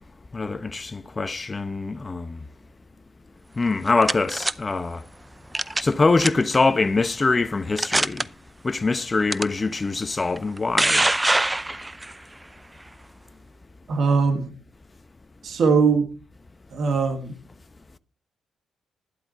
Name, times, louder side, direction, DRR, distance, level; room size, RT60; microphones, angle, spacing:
voice 1, 0.3-2.4 3.6-5.0 5.8-8.3 8.6-11.1, left 3 dB, 30° left, 0.9 m, -23 dB
sound 1, 3.6-4.5 5.5-5.9 6.2-6.6 7.2-7.3 7.8-8.2 9.3-9.4 10.4-12.1, right 2 dB, 15° right, 0.6 m, -22 dB
voice 2, 13.9-14.5 15.4-16.1 16.7-17.3, right 5 dB, 60° right, 1.9 m, -21 dB
12.0 x 11.5 x 4.2 m
hypercardioid pair, 40°, 0 cm